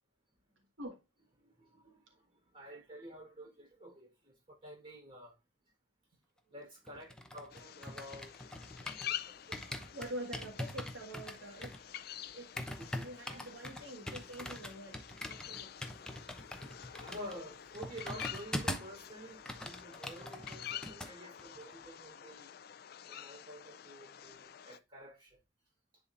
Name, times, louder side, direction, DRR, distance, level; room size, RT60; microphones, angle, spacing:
voice 1, 1.4-5.4 6.5-8.5 8.8-9.6 12.8-13.1 16.9-22.5 23.1-25.4, equal, 25° right, 3.8 m, -50 dB
sound 1, 6.9-9.2 9.5-19.0 19.3-21.1 21.4-21.7, left 1 dB, 5° left, 0.8 m, -43 dB
sound 2, 7.5-24.8, left 11 dB, 55° left, 0.4 m, -48 dB
voice 2, 9.9-11.9 12.3-15.9, right 1 dB, 90° right, 1.7 m, -46 dB
10.0 x 4.1 x 2.5 m
head